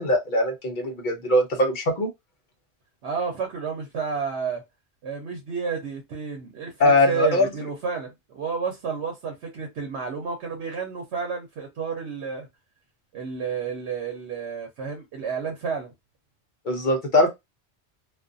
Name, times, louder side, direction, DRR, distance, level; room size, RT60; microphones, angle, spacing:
voice 1, 0.0-2.1 6.8-7.5 16.7-17.3, left 1 dB, 50° left, 0.9 m, -21 dB
voice 2, 3.0-4.6 5.0-12.5 13.1-15.9, right 6 dB, 75° right, 1.0 m, -31 dB
2.4 x 2.4 x 2.5 m
omnidirectional pair, 1.2 m